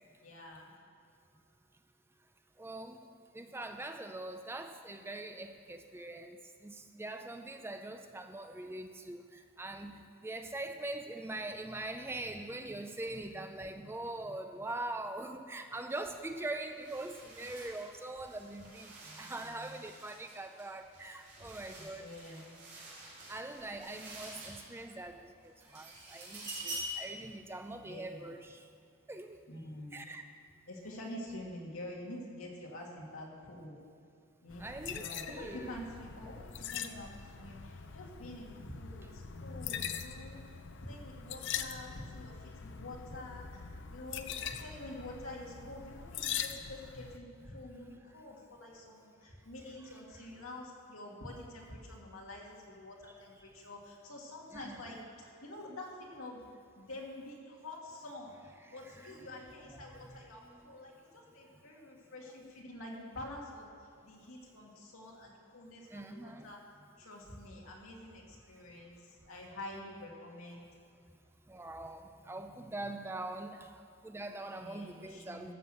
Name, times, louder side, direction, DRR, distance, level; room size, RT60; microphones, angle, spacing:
voice 1, 0.2-0.8 19.0-19.8 21.7-22.5 27.8-28.2 29.5-30.0 30.7-33.8 34.4-37.1 37.4-40.4 40.8-43.6 43.9-56.4 56.7-58.3 58.7-66.6 67.0-70.7 74.6-75.5, left 1 dB, 70° left, -2 dB, 2.3 m, -47 dB
voice 2, 2.6-3.0 3.3-22.1 23.3-28.6 29.1-29.4 29.9-30.2 34.6-35.8 54.5-54.8 58.6-59.2 65.9-66.5 71.5-75.5, right 2 dB, 10° right, 7 dB, 0.4 m, -43 dB
sound 1, 15.9-16.1 16.4-25.0 25.4-27.1, right 1 dB, 50° right, 3.4 m, -47 dB
sound 2, 34.5-47.2, left 8 dB, 55° left, 0.5 m, -42 dB
13.0 x 6.1 x 7.8 m, 2.5 s
head